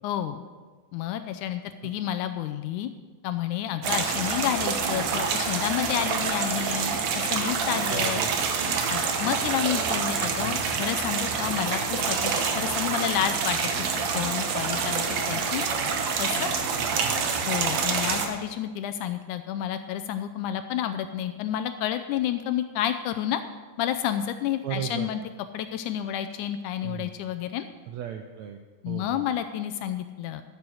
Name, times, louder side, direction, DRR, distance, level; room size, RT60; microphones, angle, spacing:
voice 1, 0.0-0.4 0.9-2.9 3.2-8.2 8.9-13.6 13.9-15.7 16.2-16.5 17.4-23.4 23.8-25.2 25.5-27.7 28.8-30.4, left 11 dB, 80° left, 9 dB, 1.9 m, -30 dB
sound 1, 3.8-18.3, right 5 dB, 65° right, 2.1 m, -27 dB
voice 2, 7.9-8.3 16.8-17.2 24.6-25.1 26.8-27.1 27.9-28.6 28.8-29.3, right 10 dB, 85° right, 5 dB, 1.6 m, -36 dB
13.5 x 7.6 x 6.3 m, 1.4 s
omnidirectional pair, 3.9 m